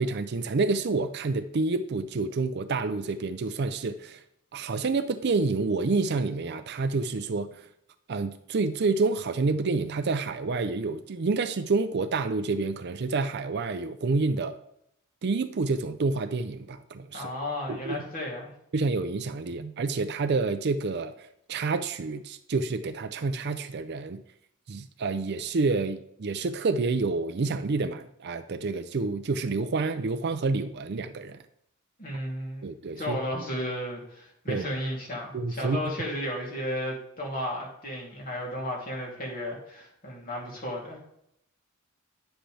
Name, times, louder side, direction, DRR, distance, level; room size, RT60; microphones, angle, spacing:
voice 1, 0.0-4.2 4.5-7.7 8.1-14.6 15.2-17.3 17.7-18.0 18.7-24.2 24.7-31.4 32.6-33.2 34.5-34.7 35.3-35.9, right 3 dB, 50° right, 10 dB, 0.5 m, -28 dB
voice 2, 17.1-18.5 32.0-32.7 33.0-41.0, left 1 dB, 40° left, -3 dB, 3.0 m, -34 dB
10.0 x 7.7 x 3.4 m, 0.75 s
head